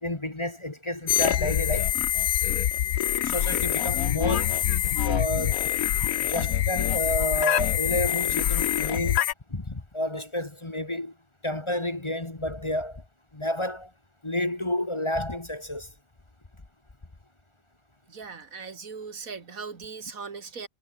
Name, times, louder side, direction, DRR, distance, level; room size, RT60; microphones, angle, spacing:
voice 1, 0.0-2.0 3.2-4.7 5.0-5.7 6.0-9.2 9.5-11.1 11.4-13.0 13.3-13.9 14.2-15.9, left 1 dB, 20° left, 1.5 m, -30 dB
sound 1, 1.1-9.3, left 11 dB, 90° left, 1.3 m, -25 dB
voice 2, 18.1-20.7, right 5 dB, 85° right, 2.5 m, -39 dB
omnidirectional pair, 1.4 m